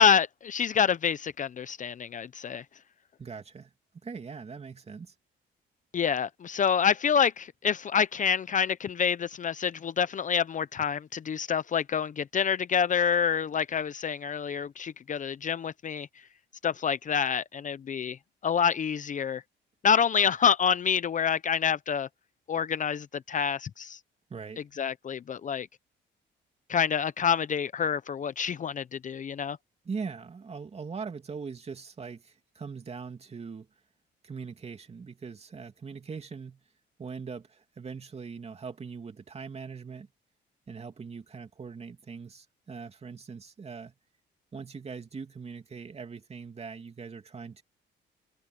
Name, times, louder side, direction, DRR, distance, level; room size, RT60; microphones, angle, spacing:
voice 1, 0.0-2.6 5.9-16.1 16.6-18.2 18.4-19.4 19.8-22.1 22.5-24.0 24.8-25.7 26.7-29.6, left 7 dB, 40° left, 0.7 m, -27 dB
voice 2, 3.2-3.7 4.0-5.1 24.3-24.6 29.8-33.7 34.2-36.6 37.0-40.1 40.7-43.9 44.5-47.6, right 5 dB, 30° right, 2.7 m, -41 dB
cardioid pair, 105°, 20 cm